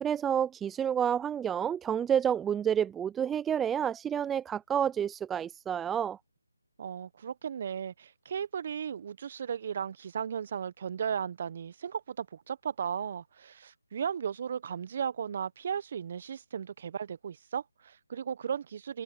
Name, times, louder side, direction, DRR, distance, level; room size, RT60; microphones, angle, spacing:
voice 1, 0.0-6.2, right 8 dB, 10° right, 0.4 m, -29 dB
voice 2, 6.8-19.0, right 7 dB, 40° right, 1.0 m, -36 dB
figure-of-eight pair, 155°, 0 cm